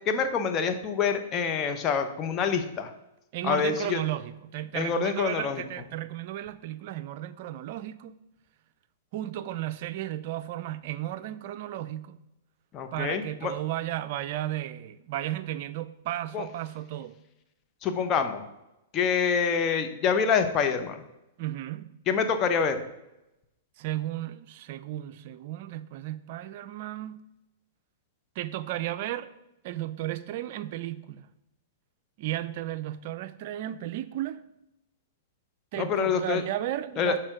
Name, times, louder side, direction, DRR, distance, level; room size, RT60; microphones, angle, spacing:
voice 1, 0.1-2.9 3.4-4.0 4.7-5.6 12.7-13.5 16.3-16.4 17.8-18.5 18.9-21.0 22.1-22.8 35.8-36.4 37.0-37.1, left 6 dB, 30° left, 0.8 m, -26 dB
voice 2, 3.3-8.2 9.1-12.2 12.9-17.2 21.4-21.9 23.8-27.2 28.4-29.3 29.6-31.3 32.2-34.4 35.7-37.2, right 13 dB, 55° right, 0.4 m, -34 dB
6.2 x 4.3 x 5.1 m
hypercardioid pair, 115°, 0 cm